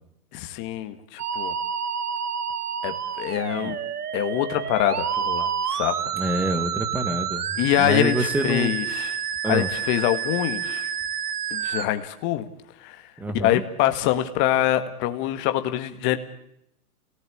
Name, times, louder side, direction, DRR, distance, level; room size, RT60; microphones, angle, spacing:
voice 1, 0.3-1.5 2.8-3.8 4.1-6.0 7.6-9.2 9.5-10.9 11.5-12.5 12.8-13.0 13.3-16.2, left 13 dB, 25° left, 8 dB, 1.8 m, -25 dB
Musical instrument, 1.2-11.9, right 8 dB, 80° right, 1.8 m, -29 dB
voice 2, 6.1-8.7 9.4-9.7 13.2-13.6, right 1 dB, 5° right, 10 dB, 1.1 m, -27 dB
29.5 x 18.5 x 8.7 m, 0.79 s
hypercardioid pair, 160°, 45 cm